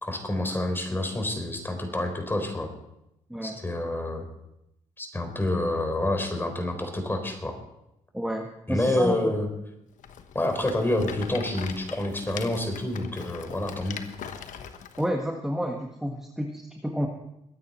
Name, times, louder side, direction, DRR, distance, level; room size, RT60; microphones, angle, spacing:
voice 1, 0.0-2.7 3.4-4.2 5.0-7.6 8.7-9.5 10.3-14.0, left 1 dB, 15° left, 5 dB, 4.0 m, -28 dB
voice 2, 8.1-9.3 15.0-17.1, equal, 5° right, 2 dB, 1.5 m, -30 dB
Rattle, 10.0-15.1, left 8 dB, 75° left, 1.2 m, -41 dB
22.0 x 9.4 x 4.3 m, 0.84 s
cardioid pair, 80°, 13 cm